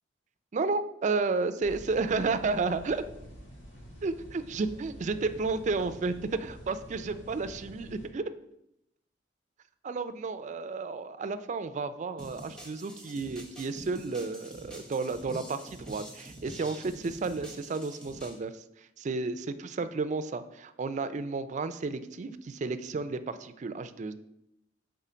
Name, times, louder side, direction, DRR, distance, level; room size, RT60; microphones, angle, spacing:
voice 1, 0.5-3.0 4.0-6.1 6.7-8.2 9.8-24.1, right 4 dB, 40° right, 11 dB, 0.4 m, -32 dB
sound 1, 1.6-8.1, equal, 85° left, 2.1 m, -48 dB
sound 2, 12.2-18.4, right 1 dB, 5° left, 0.9 m, -46 dB
5.6 x 3.8 x 4.9 m, 0.80 s
head